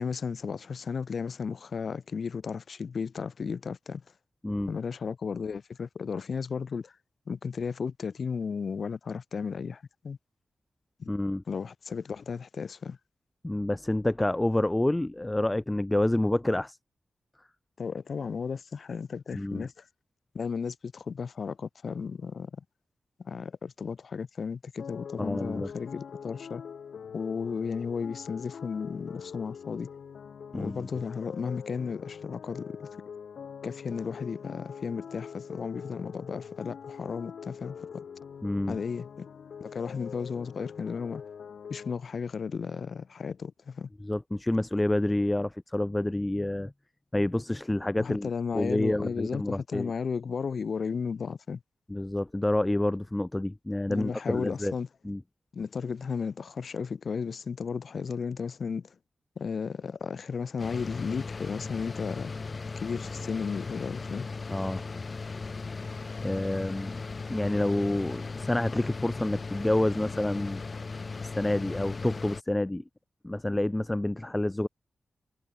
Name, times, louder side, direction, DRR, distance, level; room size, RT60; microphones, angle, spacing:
voice 1, 0.0-4.0 4.7-6.9 7.3-10.2 11.0-11.1 11.5-13.0 17.8-19.9 20.3-22.5 23.2-26.6 27.1-29.9 30.5-32.9 33.6-38.0 38.7-39.3 39.6-41.2 41.7-43.9 48.0-51.6 53.9-54.9 55.5-58.9 59.4-62.3 62.7-64.3, left 5 dB, 55° left, 3.1 m, -34 dB
voice 2, 11.1-11.4 13.4-16.8 19.3-19.6 25.2-25.7 30.5-30.9 38.4-38.8 44.0-46.7 47.1-48.3 48.5-49.9 51.9-54.7 55.0-55.2 64.5-64.8 66.2-67.0 67.3-70.6 71.2-72.8 73.2-74.7, left 1 dB, 10° left, 0.7 m, -28 dB
sound 1, 24.8-41.9, left 7 dB, 80° left, 6.8 m, -44 dB
sound 2, 60.6-72.4, left 4 dB, 35° left, 2.7 m, -37 dB
wide cardioid pair, 140°, 0 cm